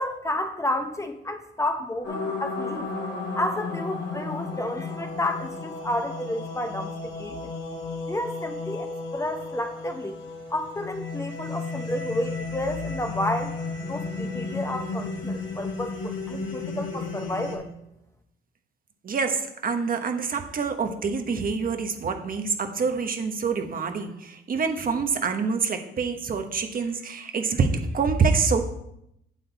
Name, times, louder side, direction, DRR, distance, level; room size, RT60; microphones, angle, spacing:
voice 1, 0.0-2.9 3.4-7.5 8.1-10.2 10.5-13.5 13.9-17.7, left 1 dB, 15° left, 6 dB, 0.9 m, -31 dB
sound 1, 2.0-17.6, left 3 dB, 75° left, 2.8 m, -33 dB
voice 2, 19.0-28.6, right 5 dB, 45° right, 6 dB, 1.1 m, -26 dB
8.4 x 7.6 x 4.1 m, 0.80 s
cardioid pair, 90°, 20 cm